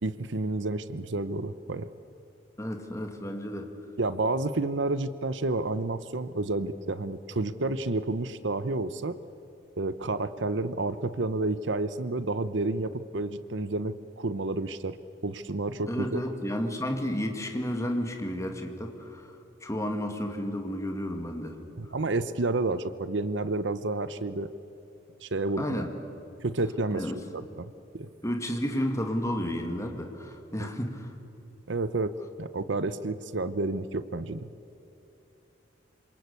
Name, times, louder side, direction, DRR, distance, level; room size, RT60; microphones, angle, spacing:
voice 1, 0.0-1.9 4.0-9.2 9.8-15.0 15.2-16.2 21.8-24.5 25.2-25.8 26.4-28.1 30.6-30.7 31.7-34.5, right 2 dB, 65° right, 14 dB, 0.8 m, -30 dB
voice 2, 2.6-3.7 15.9-21.9 25.6-25.9 26.9-27.2 28.2-31.1, equal, 15° left, 4 dB, 2.3 m, -32 dB
27.5 x 26.5 x 8.3 m, 2.9 s
head